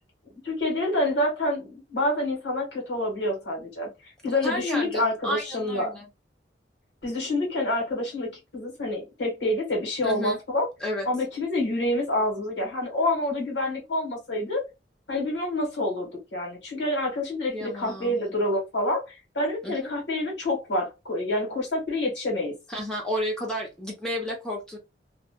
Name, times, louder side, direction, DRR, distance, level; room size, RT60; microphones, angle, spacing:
voice 1, 0.4-3.9 4.2-5.9 7.0-10.7 11.0-14.6 15.1-19.0 19.3-22.5, left 1 dB, 85° left, 1.5 m, -27 dB
voice 2, 4.4-6.0 10.0-10.4 10.8-11.1 17.5-18.2 19.6-19.9 22.7-24.8, equal, 5° left, 0.8 m, -31 dB
2.7 x 2.3 x 2.3 m
head